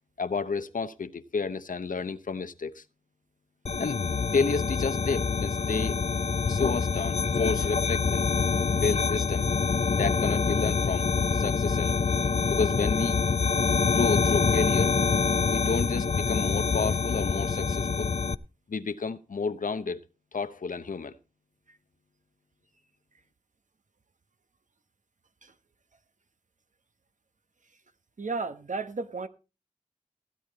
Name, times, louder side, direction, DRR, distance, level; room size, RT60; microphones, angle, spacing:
voice 1, 0.2-2.8 3.8-4.0 4.3-6.0 6.5-8.2 8.7-9.5 9.9-11.1 11.3-12.0 12.5-13.2 13.9-15.0 15.5-18.1 18.7-20.0 20.3-21.1, left 4 dB, 75° left, 0.8 m, -30 dB
sound 1, 3.7-18.3, left 5 dB, 50° left, 0.5 m, -26 dB
voice 2, 28.2-29.3, right 4 dB, 65° right, 1.0 m, -34 dB
15.5 x 8.8 x 4.0 m
cardioid pair, 40°, 14 cm